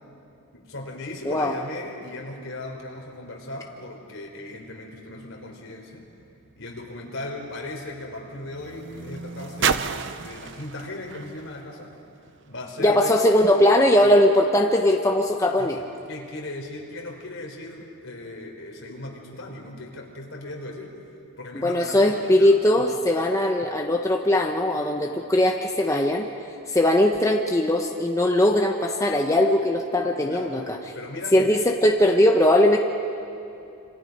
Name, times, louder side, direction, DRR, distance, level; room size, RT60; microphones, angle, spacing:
voice 1, 0.5-6.1 6.6-9.9 10.1-11.9 12.5-13.2 14.0-14.1 15.6-20.9 21.4-22.9 24.8-25.1 30.2-30.7 30.9-31.5, left 2 dB, 65° left, 0 dB, 4.0 m, -37 dB
sound 1, 6.1-12.6 13.4-13.5, right 6 dB, 55° right, 0.7 m, -33 dB
voice 2, 12.8-15.8 21.5-26.3 26.7-30.8 31.3-32.8, left 1 dB, 15° left, 1 dB, 0.9 m, -20 dB
27.0 x 26.5 x 5.4 m, 2.7 s
head